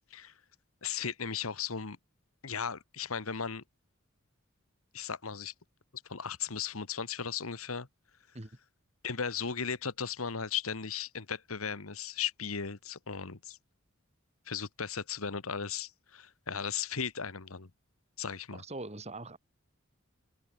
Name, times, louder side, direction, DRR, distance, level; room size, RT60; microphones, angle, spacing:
voice 1, 0.8-2.0 2.4-3.6 4.9-5.5 6.1-7.9 9.0-13.6 14.5-17.7 18.2-18.6, left 6 dB, 85° left, 1.5 m, -36 dB
voice 2, 18.5-19.4, right 2 dB, 30° right, 2.8 m, -42 dB
head